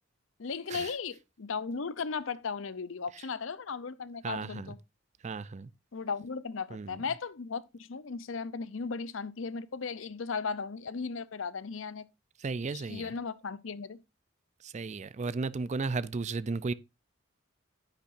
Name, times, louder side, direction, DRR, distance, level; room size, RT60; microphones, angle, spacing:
voice 1, 0.4-4.8 5.9-12.0 12.7-14.0, left 5 dB, 70° left, 0.6 m, -36 dB
voice 2, 4.2-4.8 5.2-5.7 6.7-7.0 12.4-13.1 14.6-16.7, right 4 dB, 35° right, 0.4 m, -34 dB
10.0 x 8.6 x 2.6 m
head